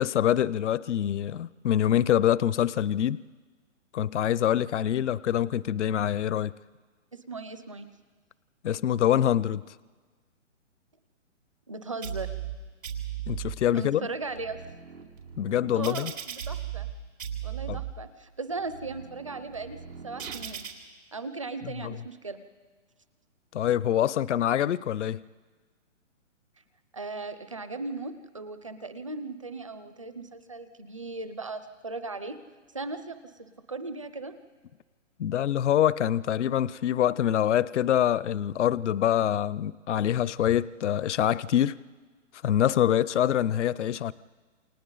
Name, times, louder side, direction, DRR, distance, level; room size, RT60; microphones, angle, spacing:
voice 1, 0.0-3.2 3.9-6.5 8.6-9.6 13.3-14.1 15.4-16.1 17.7-17.8 21.8-21.9 23.5-25.2 35.2-41.8 42.4-44.1, left 10 dB, 65° left, 20 dB, 0.5 m, -25 dB
voice 2, 7.1-7.9 11.7-12.3 13.7-14.6 15.8-16.9 17.4-20.6 21.1-22.4 26.9-32.4 32.7-34.3, right 3 dB, 25° right, 11 dB, 0.6 m, -37 dB
sound 1, 12.0-12.5 12.8-13.5 14.1-16.9 17.2-17.9 18.5-20.7, right 10 dB, 85° right, 4.1 m, -37 dB
29.0 x 27.0 x 3.9 m, 1.4 s
hypercardioid pair, 180°, 38 cm